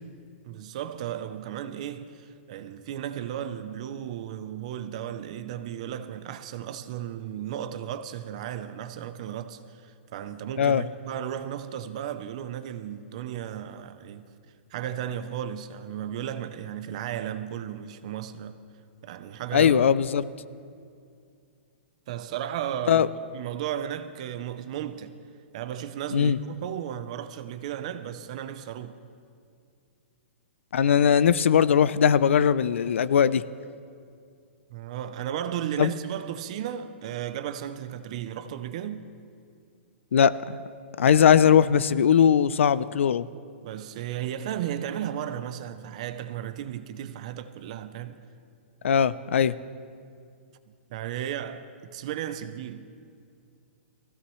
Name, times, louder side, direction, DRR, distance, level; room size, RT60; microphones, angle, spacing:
voice 1, 0.4-14.3 14.7-18.6 19.0-19.9 22.1-23.1 23.3-25.1 25.5-29.0 34.7-39.1 43.6-48.2 50.9-52.9, right 10 dB, 30° right, 0.5 m, -35 dB
voice 2, 19.5-20.2 22.9-23.1 26.1-26.4 30.7-33.4 35.8-35.9 40.1-40.6 41.0-43.3 48.8-49.5, left 8 dB, 90° left, 0.5 m, -20 dB
19.5 x 16.0 x 3.1 m
hypercardioid pair, 180°, 7 cm